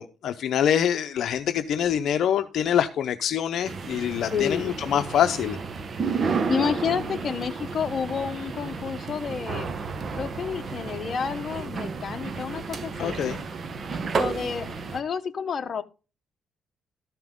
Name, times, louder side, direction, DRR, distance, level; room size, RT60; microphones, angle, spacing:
voice 1, 0.0-5.6 13.0-13.4, left 9 dB, 70° left, 8 dB, 0.7 m, -25 dB
sound 1, 3.6-15.0, right 4 dB, 45° right, 1.1 m, -32 dB
voice 2, 4.3-4.6 6.5-9.7 10.1-13.2 14.1-15.8, left 6 dB, 45° left, 7 dB, 1.0 m, -30 dB
13.5 x 5.8 x 3.7 m, 0.32 s
cardioid pair, 90°, 0 cm